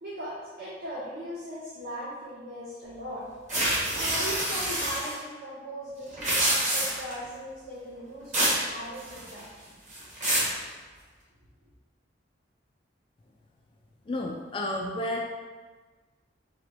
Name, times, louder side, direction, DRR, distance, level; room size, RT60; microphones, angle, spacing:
voice 1, 0.0-3.3 3.9-9.5, equal, 60° right, -10 dB, 1.1 m, -39 dB
sound 1, 3.5-5.1 6.1-7.1 8.3-8.6 9.0-9.5 9.9-10.5, right 1 dB, 40° right, 1.3 m, -26 dB
voice 2, 14.1-15.2, left 1 dB, 30° left, 0 dB, 0.3 m, -31 dB
3.7 x 3.7 x 3.3 m, 1.4 s
head